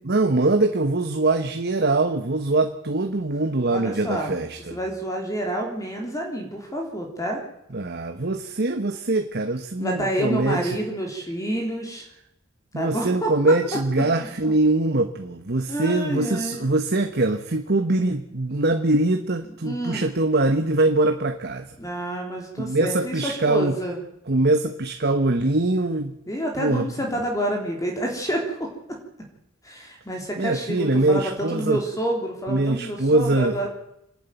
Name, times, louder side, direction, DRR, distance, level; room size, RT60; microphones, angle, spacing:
voice 1, 0.0-4.8 7.7-10.8 12.7-21.7 22.6-23.7 24.3-26.1 26.6-26.9 30.4-31.8 32.5-33.7, right 2 dB, 55° right, 6 dB, 1.2 m, -23 dB
voice 2, 3.7-4.3 4.7-7.4 9.8-12.1 12.7-13.3 14.4-14.5 15.7-16.6 19.6-20.1 21.8-24.0 26.3-28.7 29.6-33.7, right 1 dB, 15° left, 1 dB, 3.6 m, -28 dB
26.5 x 11.5 x 9.3 m, 0.83 s
head